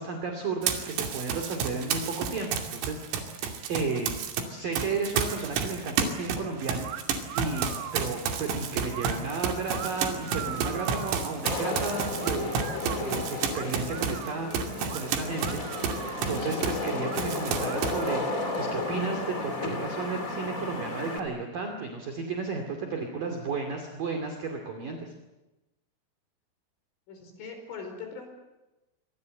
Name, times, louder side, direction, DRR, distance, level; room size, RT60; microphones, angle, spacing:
voice 1, 0.0-3.4 3.7-4.1 4.5-6.9 7.4-7.7 7.9-12.6 13.0-14.5 14.8-25.1, right 4 dB, 50° right, 4 dB, 3.8 m, -33 dB
Run, 0.6-4.4 4.7-16.9 17.1-18.1, right 6 dB, 90° right, 5.3 m, -31 dB
sound 1, 6.8-7.0 7.3-8.0 8.9-9.2 9.7-11.2 12.2-13.0 13.5-14.5 14.9-15.0 15.4-16.4 17.0-17.2 17.6-18.7, right 11 dB, 70° right, 4.0 m, -40 dB
Wind / Rain, 9.7-21.2, left 3 dB, 25° left, 1.9 m, -34 dB
voice 2, 14.3-14.9 27.1-28.3, left 5 dB, 70° left, 5 dB, 7.2 m, -42 dB
27.5 x 24.5 x 7.9 m, 1.0 s
omnidirectional pair, 5.9 m